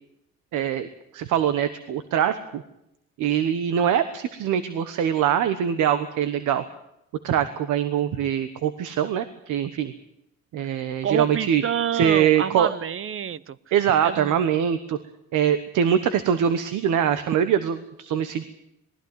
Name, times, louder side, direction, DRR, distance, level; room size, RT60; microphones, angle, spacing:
voice 1, 0.5-0.9 1.1-2.6 3.2-6.6 7.2-9.9 10.5-11.6 11.9-12.8 13.7-15.0 15.3-18.5, right 9 dB, 85° right, 11 dB, 1.2 m, -23 dB
voice 2, 11.0-13.6 14.0-14.4, right 8 dB, 45° right, 19 dB, 0.8 m, -28 dB
19.5 x 14.5 x 9.6 m, 0.82 s
cardioid pair, 90°, 30 cm